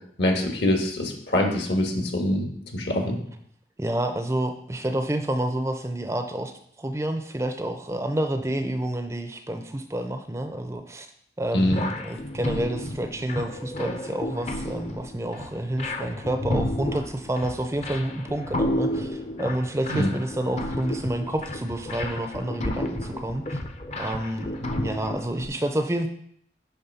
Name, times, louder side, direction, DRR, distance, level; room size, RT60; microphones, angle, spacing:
voice 1, 0.2-3.2 11.5-11.8 19.9-20.1, left 1 dB, 70° left, 2 dB, 1.7 m, -24 dB
voice 2, 3.8-6.5 6.8-11.1 11.4-23.6 24.0-26.1, right 1 dB, 15° right, 6 dB, 0.5 m, -29 dB
sound 1, 11.7-25.5, left 1 dB, 35° left, 0.7 m, -32 dB
10.0 x 3.5 x 5.5 m, 0.70 s
head